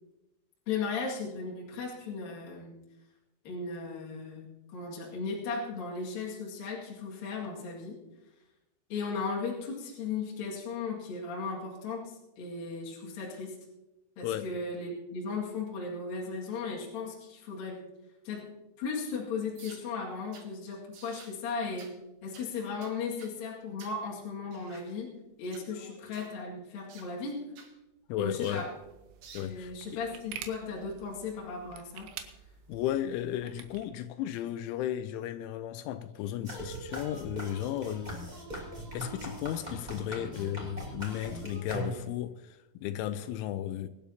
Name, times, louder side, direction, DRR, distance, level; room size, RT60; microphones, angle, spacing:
voice 1, 0.7-2.7 3.4-8.0 8.9-13.5 14.2-17.8 18.2-18.4 18.8-21.9 22.2-25.1 25.4-27.4 28.2-28.7 29.4-32.1, left 4 dB, 55° left, 3.3 m, -36 dB
voice 2, 14.2-14.6 25.6-25.7 26.1-26.2 28.1-28.7 29.3-30.0 32.7-38.2 38.9-43.9, left 11 dB, 85° left, 2.8 m, -35 dB
sound 1, 19.6-19.9 20.3-20.5 20.9-21.4 21.8-22.0 22.3-22.5 22.8-23.4 23.8-24.0 24.5-24.9 25.4-25.7 26.1-26.4 26.9-27.1 27.6-27.7 28.4-28.7 29.2-29.5, right 6 dB, 65° right, 2.4 m, -52 dB
sound 2, 28.6-33.9, right 9 dB, 80° right, 3.5 m, -48 dB
sound 3, 36.4-42.3, right 1 dB, 15° right, 1.5 m, -40 dB
24.0 x 12.0 x 2.9 m
omnidirectional pair, 5.9 m